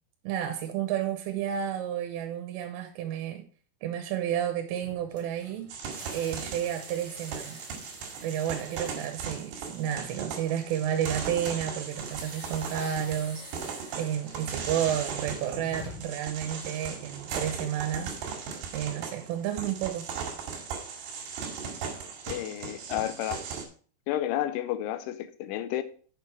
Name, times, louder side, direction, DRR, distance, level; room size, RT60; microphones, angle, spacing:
voice 1, 0.2-3.4 3.8-5.7 6.1-7.6 8.2-13.6 14.0-18.1 18.7-20.1, right 10 dB, 80° right, 3.4 m, -31 dB
sound 1, 4.8-10.2 11.9-16.2, left 1 dB, 5° right, 1.1 m, -48 dB
sound 2, 5.7-23.7, right 6 dB, 65° right, 4.0 m, -38 dB
voice 2, 22.3-23.4 24.1-25.8, left 12 dB, 80° left, 3.0 m, -31 dB
8.1 x 6.9 x 4.6 m
omnidirectional pair, 5.8 m